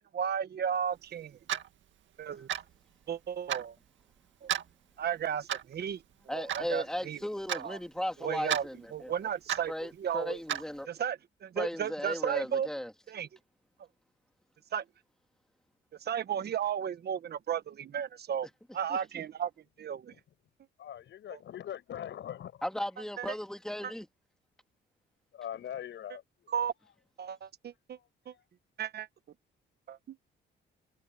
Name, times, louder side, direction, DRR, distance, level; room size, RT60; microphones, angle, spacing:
voice 1, 0.1-1.4 2.2-2.5 3.1-3.7 4.4-4.5 5.0-6.0 6.3-7.2 7.5-7.8 8.2-10.4 10.9-12.7 13.1-13.3 14.7-14.8 16.0-18.5 18.7-19.5 19.8-20.1 21.3-21.4 23.2-23.3 26.5-26.7 27.2-28.0 28.3-28.4 28.8-29.1 29.9-30.2, right 8 dB, 55° right, 1.2 m, -34 dB
Clock, 1.5-1.7 2.5-2.7 3.5-3.7 4.5-4.7 5.5-5.7 6.5-6.7 7.5-7.7 8.5-8.6 9.5-9.7 10.5-10.6, right 10 dB, 70° right, 1.9 m, -32 dB
voice 2, 6.3-9.1 9.7-10.9 11.6-12.9 18.9-19.0 22.6-24.1, equal, 5° left, 2.5 m, -36 dB
voice 3, 20.8-22.6 25.3-26.5 27.9-28.0 28.3-28.4, left 10 dB, 70° left, 5.7 m, -42 dB
cardioid pair, 90°, 20 cm